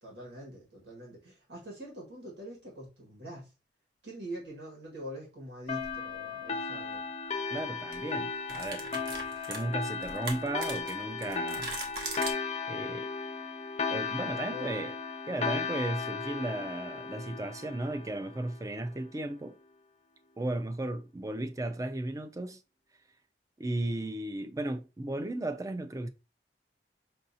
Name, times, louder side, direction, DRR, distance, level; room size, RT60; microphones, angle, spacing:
voice 1, 0.0-3.5 4.0-7.0 14.5-14.8, equal, 85° right, 1.6 m, -44 dB
sound 1, 5.7-18.8, left 5 dB, 35° left, 0.5 m, -36 dB
sound 2, 5.7-5.9 7.4-7.6 7.9-8.0 8.5-12.3, right 3 dB, 65° right, 1.0 m, -40 dB
voice 2, 7.5-8.9 9.5-11.7 12.7-13.1 13.9-15.0 15.3-19.6 20.4-22.6 23.6-26.1, right 1 dB, 20° right, 0.4 m, -35 dB
5.4 x 2.7 x 2.7 m
head